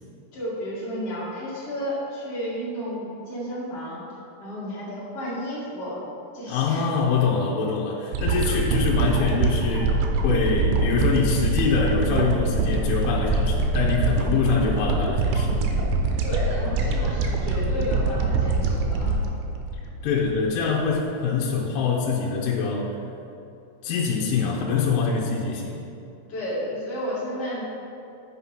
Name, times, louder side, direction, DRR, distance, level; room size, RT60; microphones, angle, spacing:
voice 1, 0.3-4.0 4.4-6.0 6.3-6.9 16.2-19.2 26.3-27.6, equal, 45° left, -8 dB, 2.0 m, -32 dB
voice 2, 6.5-15.6 17.2-17.3 20.0-22.9 23.8-25.8, left 5 dB, 75° left, -3 dB, 3.1 m, -24 dB
sound 1, 8.1-20.5 20.9-21.0, right 3 dB, 85° right, 3.2 m, -24 dB
8.2 x 5.9 x 5.6 m, 2.7 s
omnidirectional pair, 5.9 m